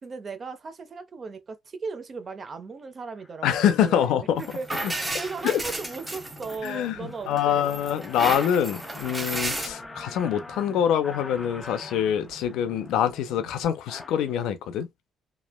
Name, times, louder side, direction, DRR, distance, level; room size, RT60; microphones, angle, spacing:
voice 1, 0.0-7.7, right 4 dB, 40° right, 0.6 m, -37 dB
sound 1, 2.3-2.5 3.1-3.4 3.9-4.3 4.7-4.8 5.1-14.5, left 2 dB, 20° left, 0.5 m, -45 dB
voice 2, 3.4-4.4 4.8-4.9 5.4-5.6 6.6-14.9, left 9 dB, 90° left, 0.4 m, -25 dB
sound 2, 3.6-13.6, right 3 dB, 80° right, 1.2 m, -50 dB
sound 3, 4.4-6.9 7.4-9.7, right 1 dB, 15° right, 0.8 m, -33 dB
3.1 x 2.1 x 2.2 m
cardioid pair, 90°, 0 cm